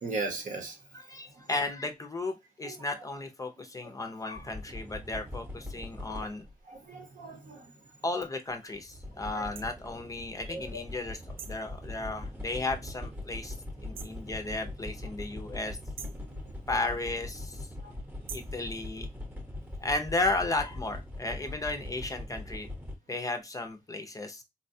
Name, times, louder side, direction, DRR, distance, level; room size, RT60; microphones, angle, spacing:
voice 1, 0.0-0.8 1.4-1.5 2.6-2.8 6.7-7.7 9.2-9.5 10.5-10.8 16.3-16.4 17.8-17.9, right 3 dB, 60° right, 0.9 m, -38 dB
voice 2, 0.9-6.5 8.0-11.2 11.5-13.5 13.8-15.8 16.7-17.7 18.3-19.1 19.8-22.7 23.1-24.4, left 2 dB, 25° left, 0.5 m, -34 dB
sound 1, 4.4-6.5 8.5-23.0, left 1 dB, 10° right, 0.8 m, -41 dB
sound 2, 9.5-9.7 11.4-11.7 13.9-14.2 16.0-16.3 18.3-18.6, right 8 dB, 90° right, 0.4 m, -44 dB
4.1 x 2.2 x 2.6 m
wide cardioid pair, 145°, 15 cm